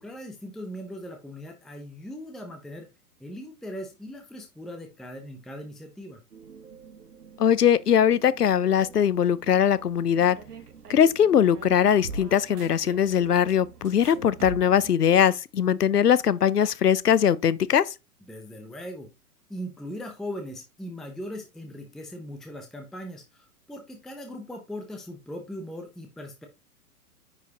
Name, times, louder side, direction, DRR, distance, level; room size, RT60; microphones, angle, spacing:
voice 1, 0.0-2.9 3.2-6.2 18.3-19.1 19.5-26.5, equal, ahead, 0.7 m, -39 dB
sound 1, 6.3-14.9, right 4 dB, 80° right, 1.1 m, -44 dB
voice 2, 7.4-10.4 10.9-17.9, left 9 dB, 85° left, 0.6 m, -21 dB
9.7 x 4.7 x 2.9 m
figure-of-eight pair, 110°, 46 cm